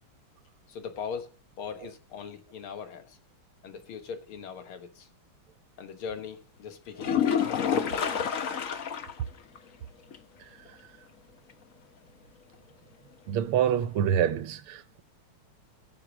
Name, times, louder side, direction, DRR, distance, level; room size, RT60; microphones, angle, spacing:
voice 1, 0.7-1.3 1.6-3.2 3.6-5.1 5.8-7.3, left 6 dB, 80° left, 2.2 m, -40 dB
sound 1, 7.0-9.2 9.6-9.7 10.1-10.2 14.0-14.1, left 8 dB, 50° left, 1.1 m, -28 dB
voice 2, 13.3-15.0, right 9 dB, 85° right, 1.7 m, -26 dB
17.5 x 6.9 x 6.0 m
omnidirectional pair, 2.3 m